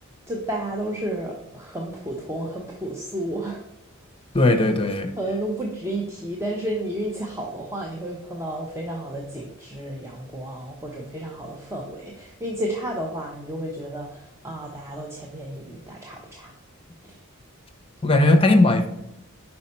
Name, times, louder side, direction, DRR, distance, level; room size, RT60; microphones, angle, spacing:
voice 1, 0.3-3.6 5.2-16.5 17.0-17.2, right 1 dB, 15° right, -1 dB, 0.6 m, -32 dB
voice 2, 4.3-5.1 18.0-18.9, left 2 dB, 25° left, 6 dB, 0.6 m, -18 dB
5.5 x 4.4 x 4.2 m, 0.89 s
head